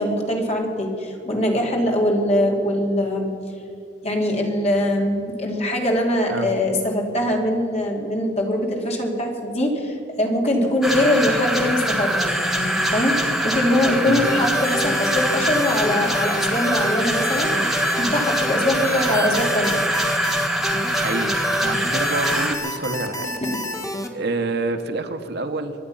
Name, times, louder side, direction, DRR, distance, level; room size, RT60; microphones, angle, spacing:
voice 1, 0.0-3.3 4.0-17.7 18.0-19.8 23.4-23.6, left 1 dB, 35° left, 0 dB, 2.8 m, -22 dB
sound 1, 10.8-22.5, right 1 dB, ahead, 1.4 m, -23 dB
sound 2, 14.2-24.1, left 1 dB, 15° left, 1.5 m, -29 dB
voice 2, 21.0-21.3 21.6-23.3 24.1-25.7, right 2 dB, 60° right, 7 dB, 1.2 m, -27 dB
24.0 x 10.0 x 5.7 m, 2.7 s
head